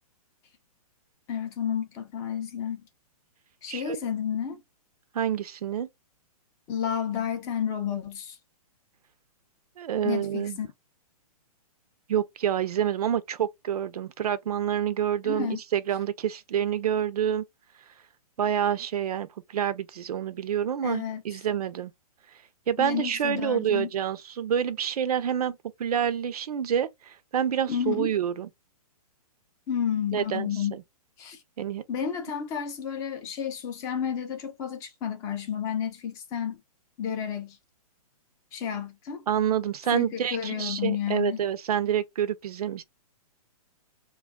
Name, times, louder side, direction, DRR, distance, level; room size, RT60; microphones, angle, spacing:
voice 1, 1.3-2.8 3.6-4.6 6.7-8.4 10.0-10.7 15.2-15.6 20.8-21.2 22.8-23.9 27.7-28.1 29.7-30.8 31.2-31.4 31.9-36.6 37.0-37.6 38.5-39.2 39.9-41.4, left 8 dB, 15° left, 0.3 m, -31 dB
voice 2, 5.1-5.9 9.8-10.6 12.1-15.5 15.7-17.4 18.4-21.9 22.7-28.5 30.1-30.8 31.6-31.8 39.3-42.8, right 9 dB, 75° right, 0.5 m, -28 dB
2.3 x 2.1 x 3.4 m
hypercardioid pair, 145°, 20 cm